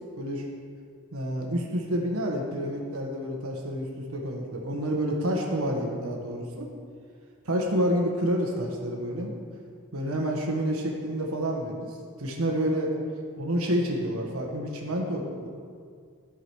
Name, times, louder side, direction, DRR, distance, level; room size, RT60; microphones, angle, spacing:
voice 1, 1.1-6.7 7.4-9.3 9.9-12.9 13.4-15.5, equal, 85° right, 0 dB, 1.4 m, -29 dB
13.0 x 5.0 x 6.2 m, 2.1 s
head